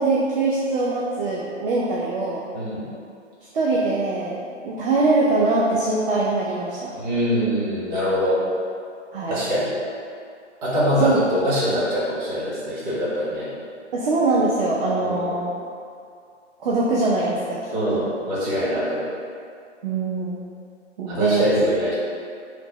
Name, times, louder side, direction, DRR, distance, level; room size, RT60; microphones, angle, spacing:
voice 1, 0.0-2.4 3.5-6.9 9.1-9.4 11.0-11.1 13.9-15.5 16.6-17.6 17.9-18.1 19.8-20.4 21.0-21.5, right 3 dB, 50° right, -4 dB, 0.5 m, -22 dB
voice 2, 2.5-2.9 7.0-8.4 9.3-9.7 10.6-13.5 15.0-15.2 17.7-19.1 21.1-21.9, equal, 35° right, -8 dB, 1.1 m, -23 dB
3.2 x 2.1 x 3.9 m, 2.4 s
figure-of-eight pair, 125°, 37 cm